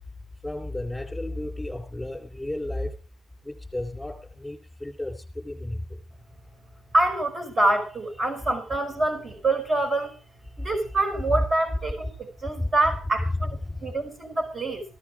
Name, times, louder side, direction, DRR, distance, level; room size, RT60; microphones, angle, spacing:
voice 1, 0.4-3.0 3.4-5.8 12.6-12.7 13.3-13.9, left 1 dB, 5° left, -4 dB, 4.0 m, -33 dB
voice 2, 6.9-10.1 10.6-14.8, right 2 dB, 40° right, 5 dB, 5.2 m, -26 dB
15.5 x 13.0 x 4.9 m, 0.35 s
cardioid pair, 90°, 0 cm